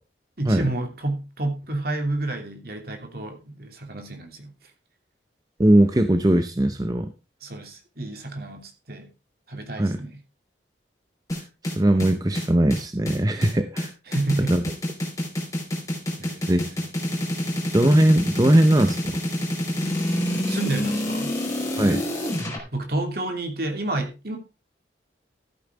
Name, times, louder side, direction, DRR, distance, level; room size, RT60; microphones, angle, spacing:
voice 1, 0.4-4.5 7.4-9.1 9.5-10.2 14.1-14.6 16.2-16.9 20.5-21.3 22.7-24.4, right 2 dB, 55° right, 2.8 m, -30 dB
voice 2, 5.6-7.1 9.8-10.0 11.6-13.9 14.5-14.6 16.5-16.7 17.7-19.2 21.8-22.0, right 1 dB, 20° right, 0.7 m, -20 dB
sound 1, 11.3-22.6, left 1 dB, 20° left, 5.0 m, -27 dB
14.0 x 9.0 x 3.6 m
head